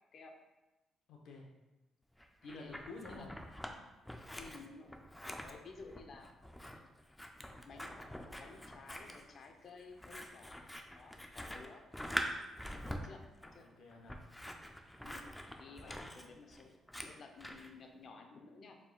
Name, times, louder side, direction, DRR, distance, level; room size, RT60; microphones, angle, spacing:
voice 1, 1.1-1.5 2.4-3.3 13.0-13.1 13.6-14.2 15.7-16.0, left 3 dB, 75° left, 0 dB, 0.9 m, -51 dB
Scissors, 2.2-3.7 4.0-17.7, equal, 5° left, 0.4 m, -45 dB
voice 2, 4.4-4.9 5.2-6.3 6.7-6.9 7.6-8.0 8.3-10.7 10.9-11.8 12.7-13.7 15.0-15.3 15.6-18.8, left 4 dB, 55° left, 4 dB, 0.6 m, -54 dB
4.7 x 3.6 x 2.3 m, 1.0 s
cardioid pair, 90°, 0 cm